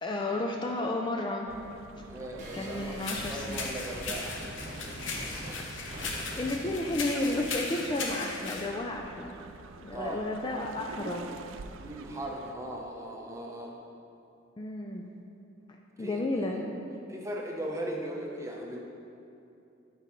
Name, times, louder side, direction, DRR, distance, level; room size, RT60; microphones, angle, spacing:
voice 1, 0.0-1.5 2.5-3.7 5.8-9.4 9.8-11.3 14.6-15.1 16.0-16.6, left 2 dB, 25° left, 1 dB, 0.3 m, -32 dB
sound 1, 1.5-12.5, right 5 dB, 85° right, 0.3 m, -48 dB
voice 2, 2.1-3.0 3.3-4.6 9.9-10.3 11.8-13.8 16.0-16.7 17.1-18.8, right 1 dB, 15° right, 0 dB, 0.6 m, -38 dB
sound 2, 2.4-8.5, right 1 dB, 40° right, 1.1 m, -44 dB
sound 3, 3.0-8.7, left 3 dB, 75° left, 0.8 m, -37 dB
11.0 x 4.4 x 3.0 m, 2.8 s
head